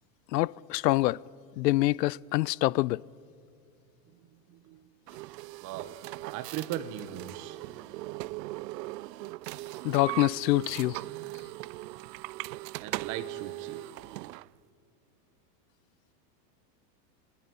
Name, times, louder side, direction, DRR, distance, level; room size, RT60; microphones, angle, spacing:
voice 1, 0.3-1.2 1.6-3.0 9.8-11.0, left 19 dB, 85° left, 0.6 m, -26 dB
voice 2, 4.2-4.9 5.6-6.0 6.3-7.6 12.8-13.8, right 11 dB, 40° right, 1.5 m, -38 dB
sound 1, 5.1-14.5, right 19 dB, 80° right, 0.6 m, -39 dB
28.0 x 24.0 x 5.7 m
supercardioid pair, 145°, 49 cm